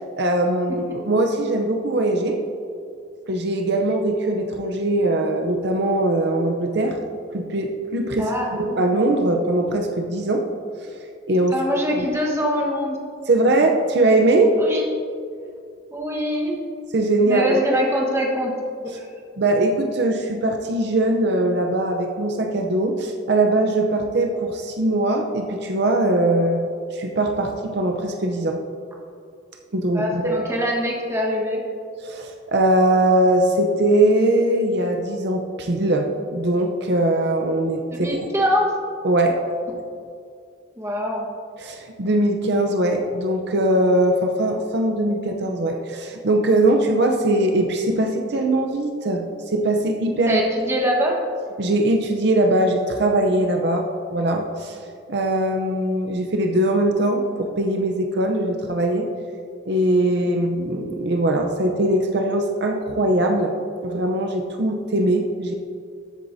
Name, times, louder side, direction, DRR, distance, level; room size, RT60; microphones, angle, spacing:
voice 1, 0.2-2.4 3.3-7.0 7.3-8.3 8.6-10.4 10.9-11.6 12.0-12.1 13.3-14.6 16.9-17.6 19.4-28.6 29.7-30.4 32.0-38.2 39.0-39.4 41.6-50.4 51.6-59.1 59.7-63.5 63.8-65.5, right 1 dB, 60° right, 3 dB, 0.7 m, -21 dB
voice 2, 8.2-8.8 11.5-13.0 14.6-14.9 15.9-16.6 17.3-18.5 18.9-19.1 29.9-31.6 37.9-38.8 40.8-41.3 50.3-51.2, equal, 15° right, -1 dB, 1.3 m, -23 dB
13.0 x 8.1 x 2.7 m, 2.4 s
head